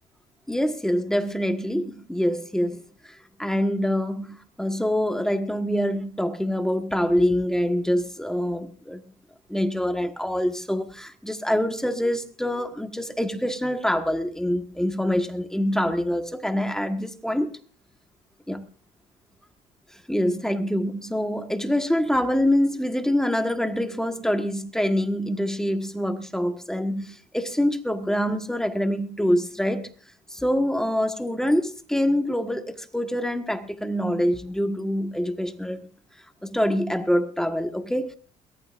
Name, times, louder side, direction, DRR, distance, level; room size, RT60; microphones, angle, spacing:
voice 1, 0.5-9.0 9.5-17.5 18.5-18.6 20.1-29.9 30.3-35.8 36.4-38.1, equal, 5° left, 1.5 m, -25 dB
22.5 x 18.5 x 2.5 m
cardioid pair, 110°, 17 cm